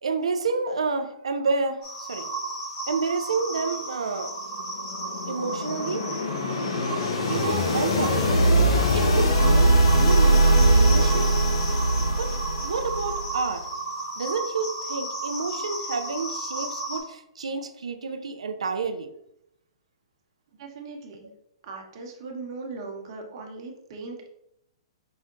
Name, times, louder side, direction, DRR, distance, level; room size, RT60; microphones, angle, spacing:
voice 1, 0.0-2.3 2.9-4.3 5.3-6.1 7.3-8.6 8.9-11.3 12.2-13.7 14.2-19.1, right 4 dB, 85° right, 8 dB, 0.5 m, -29 dB
sound 1, 1.8-17.0, right 2 dB, 45° left, 1.5 m, -34 dB
sound 2, 4.5-13.4, right 1 dB, 75° left, 0.8 m, -21 dB
voice 2, 20.6-21.3 21.6-24.3, right 3 dB, 50° right, 2 dB, 1.0 m, -39 dB
5.0 x 2.1 x 3.7 m, 0.79 s
hypercardioid pair, 130°, 3 cm